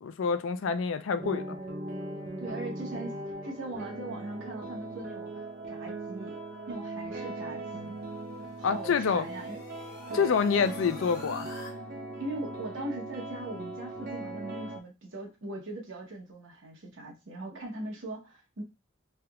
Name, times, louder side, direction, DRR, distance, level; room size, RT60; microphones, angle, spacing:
voice 1, 0.0-1.6 8.6-9.2 10.1-11.5, left 6 dB, 75° left, 0.4 m, -27 dB
sound 1, 1.2-14.8, right 2 dB, 45° right, 0.6 m, -39 dB
voice 2, 2.4-6.4 6.7-8.0 8.6-9.6 10.1-10.4 11.7-11.8 12.2-18.6, right 2 dB, 70° right, 1.0 m, -40 dB
sound 2, 7.7-11.7, left 2 dB, 50° left, 0.8 m, -49 dB
3.3 x 2.9 x 2.3 m
head